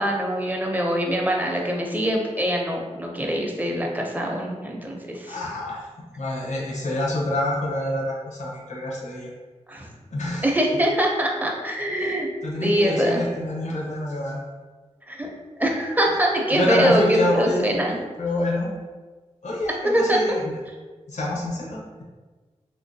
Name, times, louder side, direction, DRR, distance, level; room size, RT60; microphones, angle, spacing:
voice 1, 0.0-5.3 9.7-9.9 10.4-12.3 12.6-13.2 15.1-15.3 15.6-18.0 19.9-20.2, equal, 15° right, 0 dB, 0.6 m, -23 dB
voice 2, 5.3-9.3 10.1-10.5 12.0-14.4 16.5-17.9 18.2-18.7 19.4-20.6 21.1-21.8, left 1 dB, 85° left, -3 dB, 0.8 m, -27 dB
3.7 x 3.0 x 2.7 m, 1.3 s
wide cardioid pair, 95°, 12 cm